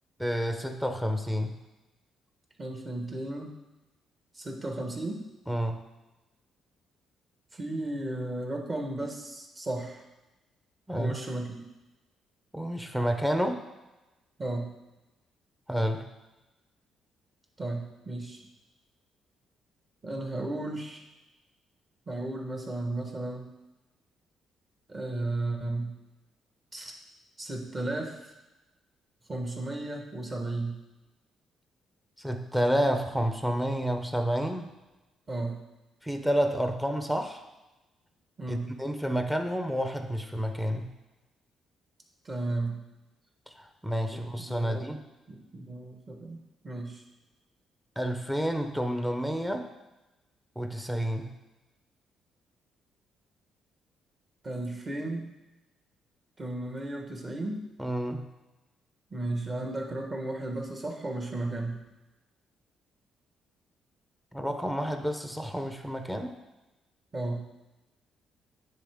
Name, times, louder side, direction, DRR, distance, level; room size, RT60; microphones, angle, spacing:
voice 1, 0.2-1.5 5.5-5.8 10.9-11.2 12.5-13.6 15.7-16.1 32.2-34.7 36.0-37.4 38.5-40.9 43.6-45.0 48.0-49.7 50.6-51.3 57.8-58.3 64.3-66.4, equal, 5° right, 6 dB, 0.6 m, -29 dB
voice 2, 2.6-3.5 4.3-5.2 7.5-10.0 11.0-11.6 14.4-14.7 17.6-18.4 20.0-21.0 22.1-23.5 24.9-25.9 26.7-26.9 27.4-28.3 29.3-30.8 35.3-35.6 38.4-38.7 42.2-42.8 44.1-44.8 45.3-46.4 46.6-47.0 54.4-55.3 56.4-57.7 59.1-61.8 67.1-67.4, right 2 dB, 30° right, 1 dB, 1.3 m, -34 dB
9.7 x 3.3 x 3.6 m, 1.0 s
cardioid pair, 90°, 0 cm